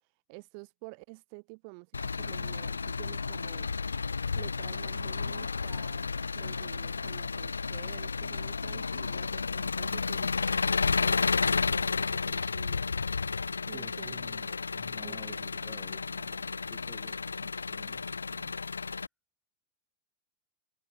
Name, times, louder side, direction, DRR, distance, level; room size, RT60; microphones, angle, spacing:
voice 1, 0.3-1.9 2.2-3.7 4.4-12.8 13.7-14.2 15.0-15.4 16.2-16.3, right 38 dB, 45° right, 5.3 m, -50 dB
Engine, 1.9-19.1, left 4 dB, 75° left, 0.8 m, -32 dB
voice 2, 13.7-14.5 14.7-18.6, left 1 dB, 5° left, 4.5 m, -53 dB
figure-of-eight pair, 90°, 0 cm